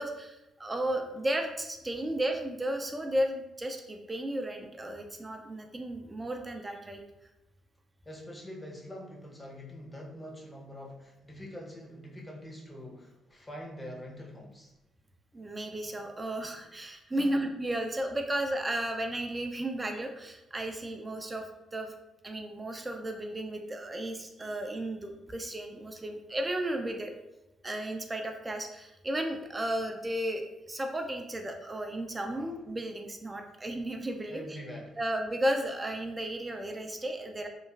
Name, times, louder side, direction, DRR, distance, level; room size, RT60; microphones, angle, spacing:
voice 1, 0.0-7.0 15.3-21.5 21.7-21.9 22.2-27.1 27.6-34.4 35.0-37.5, right 1 dB, 20° right, 4 dB, 0.3 m, -34 dB
voice 2, 8.0-14.7 17.2-17.4 32.4-32.6 34.3-35.0, equal, 20° left, -1 dB, 0.6 m, -44 dB
2.9 x 2.3 x 2.3 m, 0.97 s
cardioid pair, 90°, 0 cm